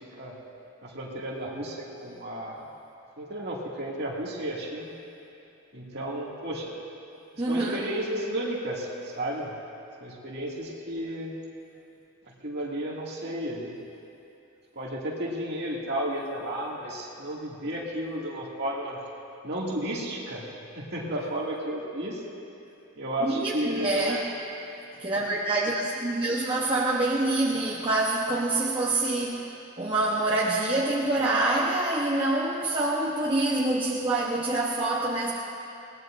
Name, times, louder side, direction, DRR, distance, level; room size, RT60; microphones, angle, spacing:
voice 1, 0.8-2.6 3.2-4.9 5.7-6.8 7.5-8.9 9.2-9.5 10.0-11.3 12.4-13.8 14.8-19.0 19.4-20.4 20.7-22.2 23.0-24.2, right 1 dB, 45° right, -4 dB, 2.2 m, -33 dB
voice 2, 7.4-7.8 23.2-24.2 25.0-29.5 29.8-35.3, right 2 dB, 20° right, -5 dB, 0.9 m, -26 dB
21.5 x 18.0 x 2.6 m, 2.8 s
head